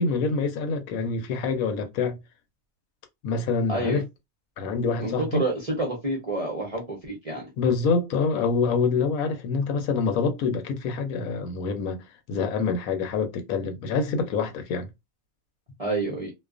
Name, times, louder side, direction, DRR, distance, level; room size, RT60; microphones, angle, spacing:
voice 1, 0.0-2.2 3.2-4.1 4.6-5.4 7.6-14.9, left 4 dB, 75° left, 1.0 m, -26 dB
voice 2, 3.7-4.0 5.0-7.5 15.8-16.3, right 2 dB, 45° right, 0.4 m, -28 dB
2.3 x 2.3 x 2.4 m
omnidirectional pair, 1.5 m